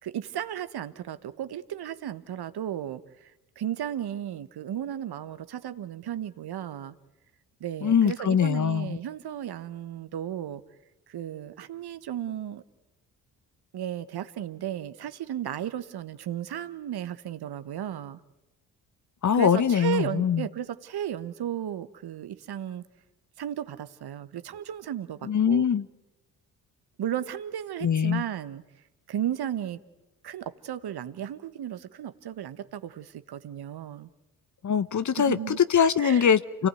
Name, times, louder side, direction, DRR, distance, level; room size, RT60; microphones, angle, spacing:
voice 1, 0.0-6.9 7.6-10.6 11.1-12.6 13.7-18.2 19.3-22.8 23.4-25.7 27.0-28.6 29.1-29.8 30.2-34.1 35.2-35.6 36.0-36.3, right 10 dB, 55° right, 13 dB, 1.4 m, -34 dB
voice 2, 7.8-9.0 19.2-20.5 25.2-25.9 27.8-28.2 34.6-36.7, left 8 dB, 40° left, 15 dB, 1.1 m, -23 dB
29.0 x 18.5 x 9.3 m, 0.99 s
hypercardioid pair, 45°, 47 cm